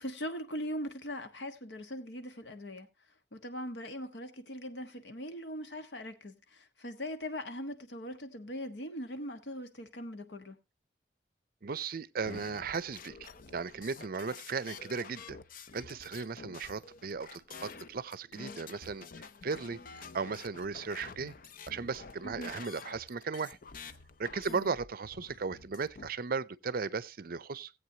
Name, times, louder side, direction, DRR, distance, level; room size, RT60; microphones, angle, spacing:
voice 1, 0.0-2.9 3.3-10.6 22.2-22.5 24.5-24.7, equal, 90° left, 1.4 m, -40 dB
voice 2, 11.6-15.4 15.7-19.8 20.1-21.3 21.7-23.6 24.2-27.7, right 5 dB, 55° right, 0.6 m, -36 dB
sound 1, 12.2-26.1, left 5 dB, 50° left, 0.6 m, -49 dB
18.0 x 8.1 x 2.8 m
head